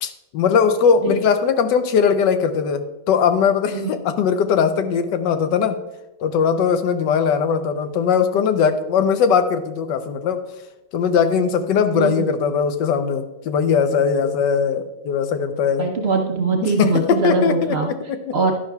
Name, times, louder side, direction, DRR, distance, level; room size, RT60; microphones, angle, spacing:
voice 1, 0.0-5.8 6.2-10.4 10.9-15.9 16.6-18.2, left 6 dB, 85° left, 9 dB, 1.4 m, -20 dB
voice 2, 11.9-12.3 15.8-17.9 18.3-18.5, right 4 dB, 50° right, 2 dB, 0.9 m, -21 dB
11.0 x 11.0 x 2.3 m, 1.0 s
omnidirectional pair, 1.9 m